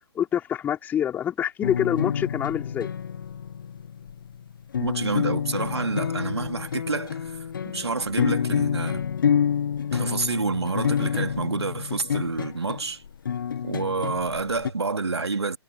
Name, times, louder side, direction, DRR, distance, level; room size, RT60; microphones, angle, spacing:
voice 1, 0.1-2.9, left 9 dB, 10° left, 4.8 m, -26 dB
sound 1, 1.6-14.7, left 8 dB, 50° left, 1.3 m, -28 dB
voice 2, 4.8-7.4 7.7-9.1 9.9-13.0 13.6-15.6, right 4 dB, 70° right, 2.9 m, -28 dB
figure-of-eight pair, 130°, 14 cm